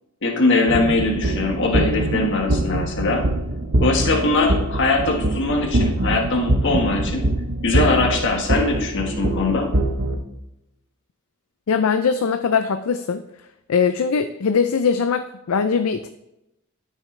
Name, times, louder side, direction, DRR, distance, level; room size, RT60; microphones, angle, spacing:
voice 1, 0.2-3.2 3.8-7.3 7.6-9.7, left 3 dB, 55° left, 2 dB, 1.5 m, -21 dB
sound 1, 0.7-10.2, right 1 dB, 50° right, 1.0 m, -23 dB
voice 2, 11.7-13.2 13.7-16.1, left 6 dB, 75° left, 9 dB, 0.4 m, -21 dB
12.0 x 6.4 x 3.3 m, 0.88 s
head